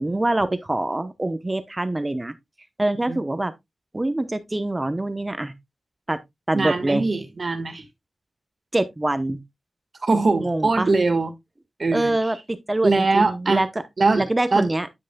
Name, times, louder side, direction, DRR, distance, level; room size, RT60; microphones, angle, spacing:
voice 1, 0.0-2.3 2.8-3.5 3.9-5.5 6.1-6.2 6.5-7.1 8.7-9.4 10.4-10.9 11.9-13.7 14.2-14.9, right 2 dB, 25° right, 0.8 m, -24 dB
voice 2, 6.5-7.8 10.0-11.3 11.8-12.1 12.8-13.6 14.0-14.2 14.5-14.7, right 3 dB, 55° right, 1.6 m, -21 dB
9.9 x 6.1 x 2.2 m
wide cardioid pair, 80°, 0 cm